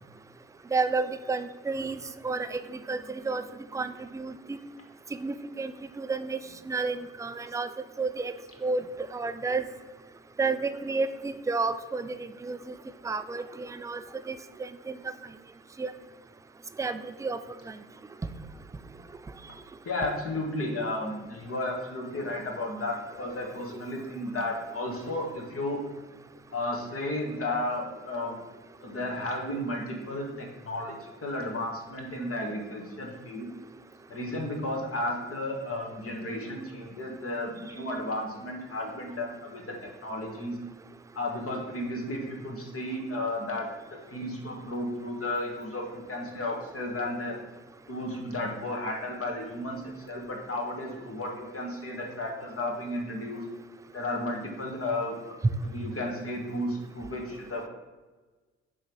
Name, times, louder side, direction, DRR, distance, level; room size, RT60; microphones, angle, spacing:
voice 1, 0.7-3.4 3.7-4.6 5.2-6.4 6.7-7.7 8.0-8.3 8.6-8.8 9.1-9.6 10.4-12.8 13.0-14.0 14.3-15.0 15.8-15.9 16.8-17.4, right 4 dB, 10° right, 11 dB, 0.3 m, -31 dB
voice 2, 19.8-25.8 26.5-28.4 28.8-33.5 34.1-40.6 41.1-43.7 44.1-47.4 47.9-53.4 53.9-55.4 55.6-57.7, left 1 dB, 40° left, 1 dB, 1.7 m, -33 dB
6.2 x 4.0 x 4.6 m, 1.3 s
figure-of-eight pair, 45°, 36 cm